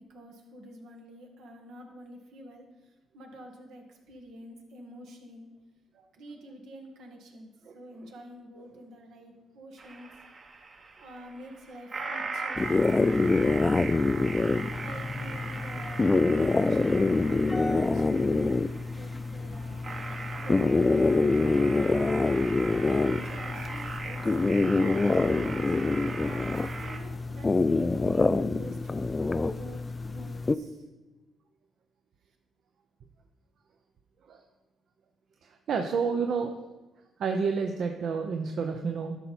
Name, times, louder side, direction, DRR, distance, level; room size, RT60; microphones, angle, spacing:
voice 1, 0.0-5.5 6.1-10.1 11.0-14.3 14.8-19.9 20.4-21.8 22.8-25.8 26.8-30.9, right 1 dB, 80° right, 2 dB, 1.7 m, -47 dB
sound 1, 9.8-27.0, right 4 dB, 45° right, 1.3 m, -40 dB
sound 2, 12.6-30.6, left 3 dB, 25° left, 0.3 m, -26 dB
voice 2, 35.4-36.6 37.2-39.2, right 5 dB, 65° right, 5 dB, 0.7 m, -30 dB
12.0 x 5.7 x 4.3 m, 1.1 s
cardioid pair, 90°, 0 cm